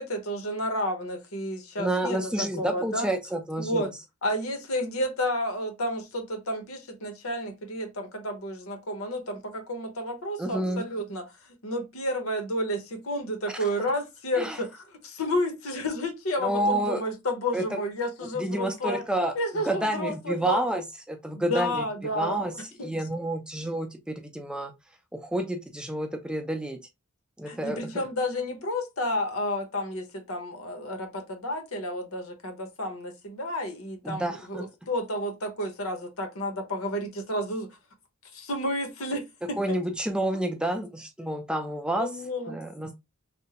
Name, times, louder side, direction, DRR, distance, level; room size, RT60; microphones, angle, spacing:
voice 1, 0.0-3.1 3.6-3.9 4.2-11.2 11.6-14.7 15.0-19.0 19.3-20.6 21.3-22.4 22.8-22.9 27.5-37.7 38.3-39.8 40.3-40.4 42.0-42.6, left 1 dB, 80° left, 1.0 m, -31 dB
voice 2, 1.8-3.9 10.4-10.8 14.4-14.6 16.4-17.0 17.5-17.8 18.4-21.9 22.1-22.5 22.8-24.7 25.1-26.8 27.4-27.8 34.0-34.6 39.6-42.1 42.5-42.9, right 1 dB, 5° right, 0.4 m, -29 dB
3.5 x 2.1 x 2.8 m
head